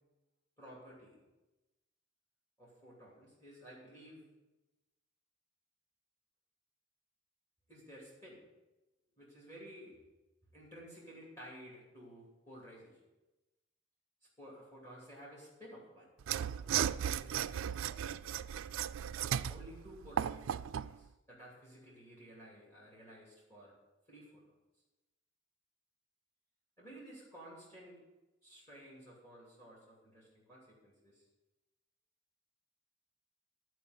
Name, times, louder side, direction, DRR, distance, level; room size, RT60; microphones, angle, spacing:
voice 1, 0.6-1.2 2.6-4.2 7.7-8.4 9.2-10.0 10.5-13.0 14.4-16.1 16.5-17.3 19.5-23.7 24.1-24.4 26.8-28.0 28.4-31.2, equal, 15° left, -5 dB, 2.8 m, -54 dB
Mechanisms / Sawing, 16.2-20.9, right 9 dB, 90° right, 0.3 m, -36 dB
14.0 x 4.6 x 8.0 m, 1.1 s
head